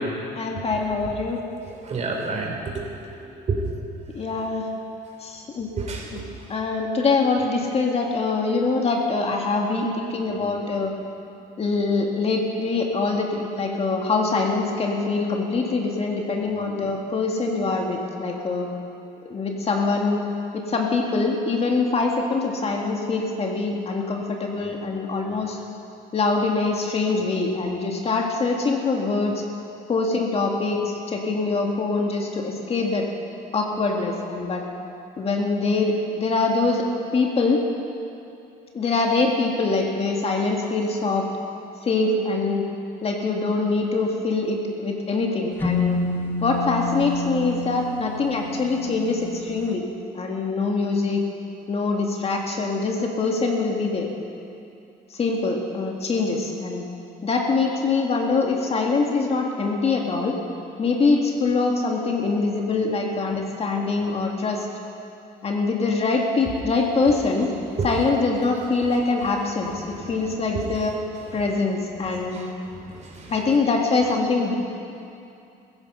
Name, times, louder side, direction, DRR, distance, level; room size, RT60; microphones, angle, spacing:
voice 1, 0.3-1.4 4.1-4.7 5.2-5.7 6.1-6.2 6.5-10.9 11.6-18.7 19.2-20.2 20.5-25.6 26.1-29.4 29.9-33.1 33.5-34.6 35.2-36.8 37.1-37.6 38.7-41.3 41.8-42.7 43.0-46.0 46.4-49.9 50.1-51.2 51.7-54.1 55.1-56.8 57.2-60.3 60.8-64.7 65.4-67.5 67.8-71.0 71.3-72.4 73.3-74.6, left 3 dB, 35° left, 1 dB, 2.0 m, -24 dB
voice 2, 1.8-2.8 3.2-3.7 5.7-6.1 67.8-67.9 70.5-70.6 72.1-72.5 72.9-73.3, right 4 dB, 40° right, 1 dB, 3.2 m, -29 dB
sound 1, 45.6-49.5, left 3 dB, 10° left, 1.5 m, -28 dB
15.5 x 15.0 x 5.6 m, 2.6 s
cardioid pair, 110°, 17 cm